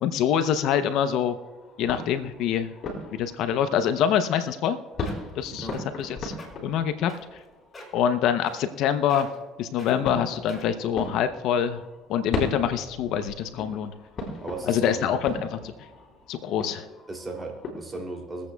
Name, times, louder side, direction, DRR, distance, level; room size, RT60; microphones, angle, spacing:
voice 1, 0.0-1.4 1.8-2.7 3.2-4.8 5.4-5.7 6.0-6.3 6.6-7.4 7.9-9.3 9.6-11.8 12.1-13.9 14.7-15.7 16.3-16.9, left 9 dB, 70° left, 10 dB, 0.6 m, -25 dB
sound 1, 1.3-4.3 4.7-8.7 9.7-17.7, left 2 dB, 50° left, 3.3 m, -38 dB
sound 2, 4.7-4.8 5.1-5.4 5.7-6.0 6.3-6.5 7.1-7.4 7.7-8.0 8.5-8.8 9.1-9.5 9.8-10.0 10.5-10.9 11.5-11.6, left 2 dB, 25° left, 4.1 m, -44 dB
voice 2, 14.4-15.2 17.1-18.5, right 2 dB, 25° right, 2 dB, 2.7 m, -36 dB
23.0 x 8.4 x 2.3 m, 1.2 s
supercardioid pair, 80°, 0 cm